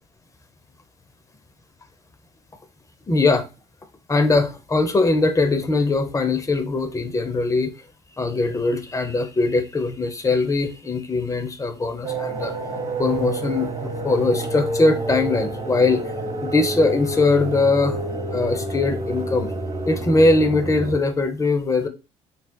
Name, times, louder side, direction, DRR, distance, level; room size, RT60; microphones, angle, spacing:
voice 1, 3.1-3.5 4.1-7.7 8.2-12.5 13.0-16.1 16.4-18.0 18.3-19.5 19.9-21.9, left 3 dB, 20° left, 8 dB, 0.6 m, -21 dB
sound 1, 12.0-21.0, right 2 dB, 30° right, 0.9 m, -28 dB
4.1 x 2.3 x 2.2 m, 0.29 s
hypercardioid pair, 60°, 17 cm